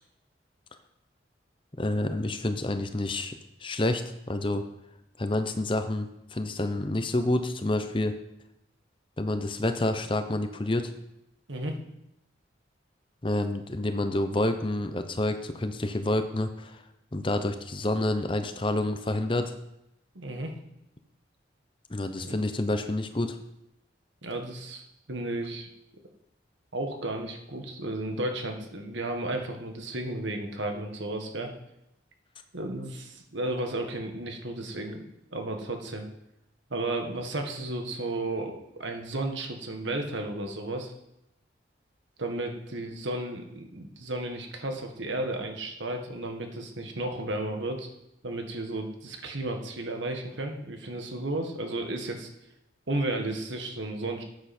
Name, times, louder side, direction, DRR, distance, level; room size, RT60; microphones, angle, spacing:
voice 1, 1.8-3.4 3.6-4.0 4.3-4.6 5.2-8.1 9.2-10.9 13.2-16.8 17.1-19.5 21.9-23.4, left 1 dB, 25° left, 8 dB, 0.8 m, -28 dB
voice 2, 20.1-20.5 22.2-22.4 24.2-24.8 25.1-25.7 26.7-31.5 32.5-35.0 35.3-36.1 36.7-40.9 42.2-47.9 48.2-52.3 52.9-54.2, right 2 dB, 80° right, 4 dB, 1.7 m, -33 dB
12.5 x 8.8 x 4.4 m, 0.85 s
head